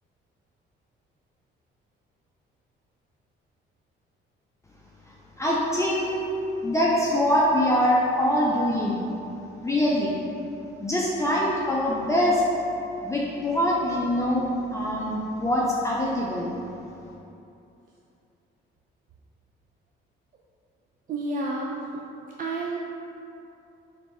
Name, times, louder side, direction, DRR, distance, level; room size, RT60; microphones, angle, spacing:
voice 1, 5.4-6.2 6.6-9.0 9.6-10.2 10.8-12.4 13.0-16.6, left 1 dB, 15° left, -5 dB, 0.5 m, -24 dB
voice 2, 21.1-21.9 22.4-22.8, right 2 dB, 45° right, -2 dB, 0.4 m, -29 dB
3.3 x 3.2 x 4.1 m, 2.8 s
cardioid pair, 90°, 20 cm